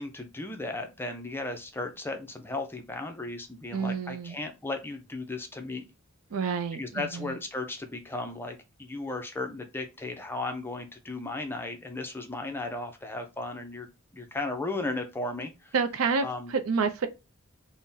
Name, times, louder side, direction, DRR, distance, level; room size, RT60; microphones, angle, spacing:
voice 1, 0.0-5.8 6.7-13.9 14.1-15.7 16.2-16.5, left 2 dB, 10° left, 0.4 m, -35 dB
voice 2, 3.7-4.4 6.3-7.3 15.7-16.3 16.5-17.1, right 5 dB, 80° right, 0.4 m, -28 dB
3.7 x 2.1 x 2.6 m
head